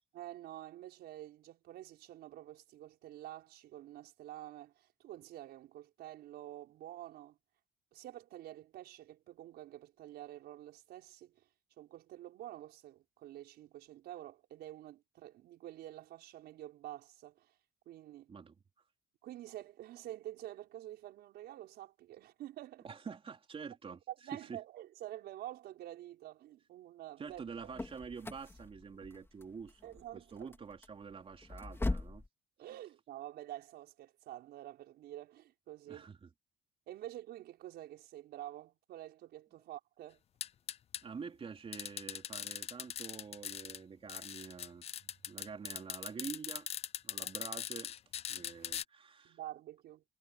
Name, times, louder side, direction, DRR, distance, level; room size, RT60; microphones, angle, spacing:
voice 1, 0.1-7.4 7.9-11.5 11.8-17.5 17.9-18.3 19.2-22.9 24.1-27.4 29.8-30.5 32.6-36.1 36.9-40.2 47.2-47.3 49.2-50.0, right 13 dB, 75° right, 5.4 m, -48 dB
voice 2, 22.8-24.0 24.4-24.6 27.2-32.2 35.9-36.3 41.0-44.8 45.3-46.7 47.0-47.9 48.3-49.4, right 5 dB, 35° right, 3.9 m, -47 dB
sound 1, 27.3-32.3, left 2 dB, 15° left, 3.4 m, -41 dB
sound 2, 40.4-41.0 41.7-43.8 44.1-48.8, left 10 dB, 40° left, 0.4 m, -41 dB
cardioid pair, 110°, 17 cm